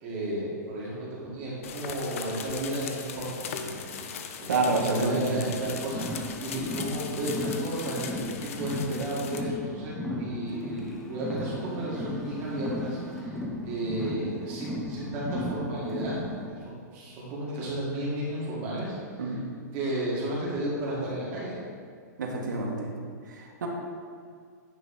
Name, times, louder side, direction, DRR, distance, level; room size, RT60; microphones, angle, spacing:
voice 1, 0.0-3.2 3.5-4.0 4.4-19.4 19.7-21.6, right 1 dB, 25° right, -6 dB, 2.0 m, -33 dB
sound 1, 1.6-9.4, left 7 dB, 50° left, 0.6 m, -39 dB
voice 2, 4.5-5.3 19.2-19.4 22.2-22.9 23.3-23.7, right 3 dB, 90° right, -1 dB, 1.5 m, -28 dB
Car, 5.3-16.4, left 1 dB, 5° left, 0.7 m, -36 dB
9.5 x 3.5 x 5.4 m, 2.1 s
hypercardioid pair, 170°, 10 cm